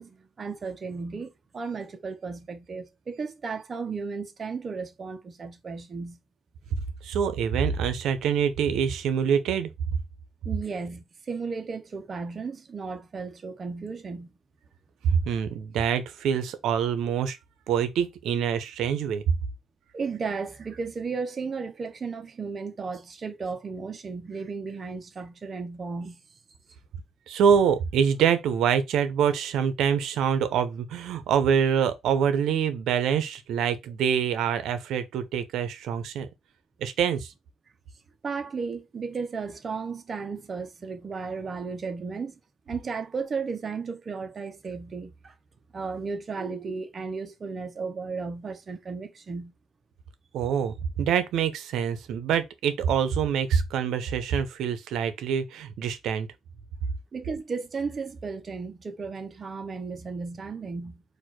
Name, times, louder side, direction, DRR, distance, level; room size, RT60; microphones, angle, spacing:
voice 1, 0.0-6.2 10.4-14.3 19.9-26.2 38.2-42.4 42.7-45.3 45.7-49.5 57.1-61.0, right 4 dB, 40° right, 1.0 m, -34 dB
voice 2, 7.0-9.7 15.1-17.4 17.7-19.2 27.3-36.3 36.8-37.3 50.3-56.3, right 7 dB, 80° right, 0.8 m, -25 dB
4.3 x 2.6 x 4.4 m
cardioid pair, 90°, 0 cm